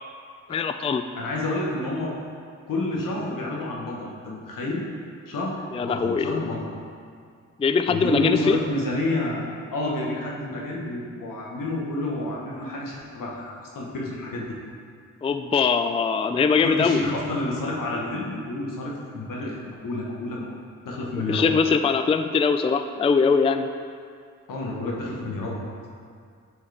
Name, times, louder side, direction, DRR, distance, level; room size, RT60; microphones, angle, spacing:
voice 1, 0.5-1.0 5.7-6.4 7.6-8.6 15.2-17.1 21.3-23.7, left 5 dB, 20° left, 8 dB, 0.3 m, -22 dB
voice 2, 1.2-2.1 2.7-4.8 5.3-6.6 7.9-14.6 16.6-20.5 20.8-21.5 24.5-25.6, left 2 dB, 80° left, -3 dB, 1.2 m, -29 dB
8.5 x 4.6 x 3.4 m, 2.2 s
supercardioid pair, 40°, 32 cm